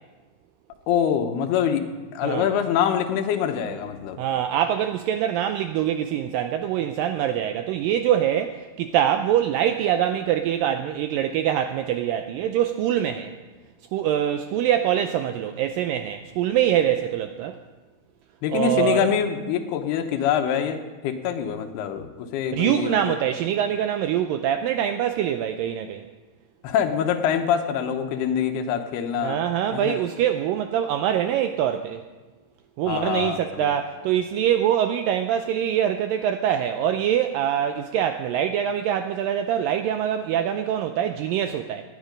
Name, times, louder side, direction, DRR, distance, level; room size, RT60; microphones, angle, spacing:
voice 1, 0.9-1.9 2.1-4.2 18.4-23.2 26.6-29.4 29.7-30.0 32.9-33.7, left 8 dB, 85° left, 6 dB, 3.0 m, -25 dB
voice 2, 4.2-13.3 13.9-17.6 18.5-19.1 22.5-26.1 29.2-32.0 32.8-41.8, right 10 dB, 85° right, 8 dB, 2.0 m, -24 dB
18.5 x 10.5 x 5.1 m, 1.3 s
omnidirectional pair, 4.5 m